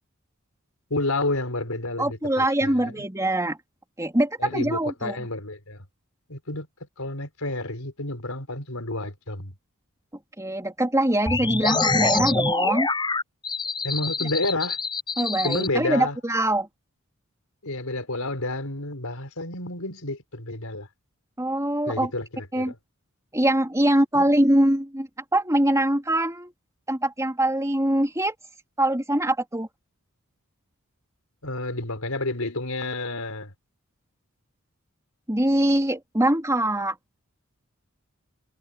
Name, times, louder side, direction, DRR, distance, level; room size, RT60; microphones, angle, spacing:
voice 1, 0.9-3.0 4.4-5.8 6.3-6.7 7.0-9.5 13.8-14.8 15.4-16.2 17.6-20.9 21.9-22.8 24.1-24.3 31.4-33.5, left 2 dB, 80° left, 4.8 m, -30 dB
voice 2, 2.0-3.6 4.0-5.2 10.4-12.9 15.2-16.7 21.4-22.1 22.5-22.7 23.3-26.5 26.9-28.3 28.8-29.7 35.3-37.0, right 1 dB, 15° right, 3.9 m, -23 dB
sound 1, 11.3-15.7, left 3 dB, 20° left, 5.5 m, -25 dB
head